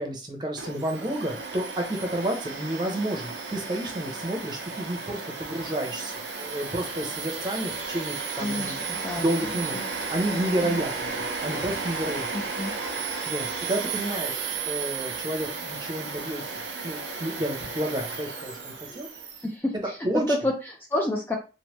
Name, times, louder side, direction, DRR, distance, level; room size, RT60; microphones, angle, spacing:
voice 1, 0.0-9.8 10.1-12.3 13.3-16.5 16.8-19.1 20.0-20.2, right 1 dB, 25° right, 2 dB, 0.6 m, -30 dB
Domestic sounds home sounds, 0.6-19.4, right 4 dB, 75° right, 0.7 m, -34 dB
voice 2, 8.4-9.8 10.3-10.8 12.3-12.7 19.4-21.4, left 1 dB, 10° left, 0 dB, 0.3 m, -30 dB
3.1 x 2.1 x 3.0 m, 0.32 s
head